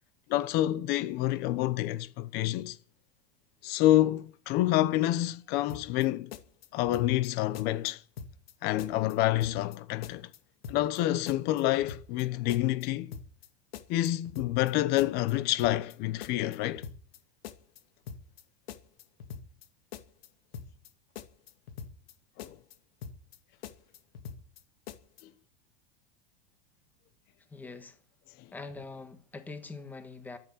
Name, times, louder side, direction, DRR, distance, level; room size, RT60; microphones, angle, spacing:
voice 1, 0.3-2.8 3.6-6.3 6.7-8.0 8.6-10.3 10.7-13.2 13.9-16.8 22.4-22.6 25.2-25.3 28.4-28.5, left 15 dB, 35° left, 1.0 m, -28 dB
sound 1, 5.7-6.1 6.3-7.3 7.5-7.9 8.2-8.5 8.8-9.8 10.0-10.4 10.6-11.0 11.3-12.2 12.5-12.9 13.1-13.5 13.7-14.7 15.0-15.3 15.6-15.9 16.2-17.2 17.4-17.8 18.1-18.4 18.7-19.7 19.9-20.3 20.5-20.9 21.2-22.1 22.4-22.8 23.0-23.4 23.6-24.6 24.9-25.2, left 7 dB, 85° left, 2.4 m, -43 dB
voice 2, 27.5-28.0 28.5-30.4, left 3 dB, 5° left, 1.4 m, -43 dB
13.5 x 11.0 x 9.2 m
supercardioid pair, 170°, 29 cm